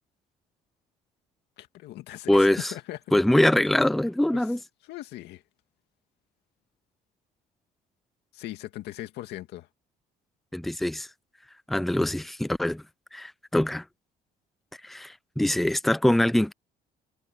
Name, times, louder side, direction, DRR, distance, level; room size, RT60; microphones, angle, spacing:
voice 1, 1.6-3.0 4.3-4.4 4.9-5.4 8.3-9.7, left 15 dB, 80° left, 2.3 m, -39 dB
voice 2, 2.3-2.7 3.1-4.6 10.5-11.1 11.7-12.8 13.1-13.8 14.8-16.5, left 1 dB, ahead, 0.3 m, -23 dB
cardioid pair, 110°, 17 cm